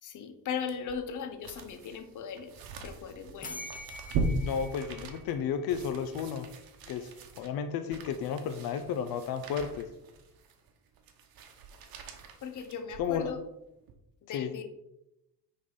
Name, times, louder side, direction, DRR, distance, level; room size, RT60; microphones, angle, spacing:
voice 1, 0.0-2.5 2.8-3.6 12.4-13.4 14.3-14.7, left 7 dB, 55° left, 7 dB, 0.9 m, -38 dB
sound 1, 0.7-13.3 13.8-13.9, right 3 dB, 70° right, 1.1 m, -40 dB
sound 2, 3.4-6.2, left 2 dB, 20° left, 0.9 m, -45 dB
voice 2, 4.3-6.5 6.9-9.9 13.0-13.3 14.3-14.5, left 7 dB, 75° left, 9 dB, 0.6 m, -33 dB
9.5 x 3.9 x 3.9 m, 0.90 s
cardioid pair, 140°, 36 cm